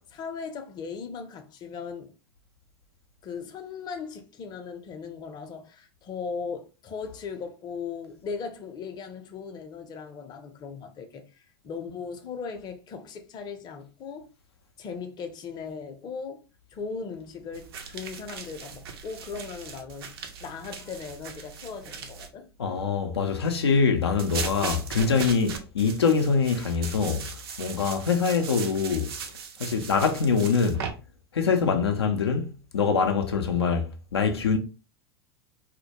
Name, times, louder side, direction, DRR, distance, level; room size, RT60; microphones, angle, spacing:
voice 1, 0.1-2.1 3.2-11.2 11.6-14.3 14.8-16.4 16.7-20.1 20.4-22.5, left 5 dB, 30° left, 0.5 m, -38 dB
sound 1, 17.5-22.3 24.2-30.9, right 6 dB, 70° right, 0.5 m, -38 dB
voice 2, 22.6-29.1 29.6-30.9 31.3-34.6, left 5 dB, 85° left, 0.4 m, -24 dB
2.1 x 2.1 x 2.8 m
hypercardioid pair, 90°, 13 cm